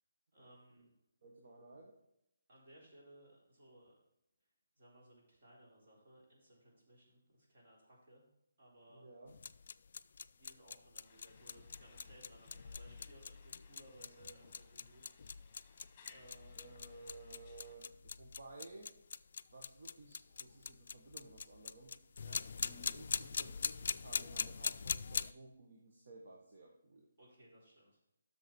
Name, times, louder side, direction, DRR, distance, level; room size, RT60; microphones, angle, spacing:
voice 1, 0.3-0.9 2.5-4.0 4.8-8.2 8.6-9.1 10.3-15.7 16.1-16.6 22.2-22.4 27.2-28.0, right 1 dB, 45° right, -3 dB, 3.6 m, -62 dB
voice 2, 1.2-1.9 8.9-9.3 16.5-18.9 19.5-22.0 22.6-27.1, right 2 dB, 60° right, 0 dB, 1.5 m, -56 dB
sound 1, 9.3-25.3, left 5 dB, 55° left, 0.3 m, -43 dB
sound 2, 11.0-17.8, left 5 dB, 20° left, 1.4 m, -66 dB
8.1 x 6.3 x 4.5 m, 0.83 s
hypercardioid pair, 170°, 0 cm